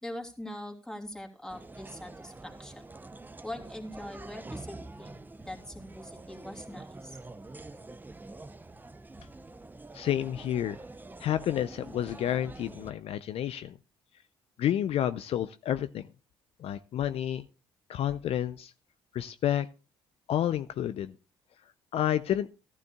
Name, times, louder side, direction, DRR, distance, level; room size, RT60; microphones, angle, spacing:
voice 1, 0.0-2.8 3.4-7.2, left 1 dB, 5° left, 1 dB, 2.8 m, -42 dB
sound 1, 1.5-12.9, right 2 dB, 15° right, 0.6 m, -46 dB
voice 2, 9.9-10.8 11.2-13.7 14.6-16.1 16.6-17.4 17.9-18.7 19.1-19.7 20.3-21.1 21.9-22.5, left 11 dB, 60° left, 12 dB, 0.5 m, -30 dB
14.5 x 12.0 x 2.3 m, 0.33 s
supercardioid pair, 60°, 11 cm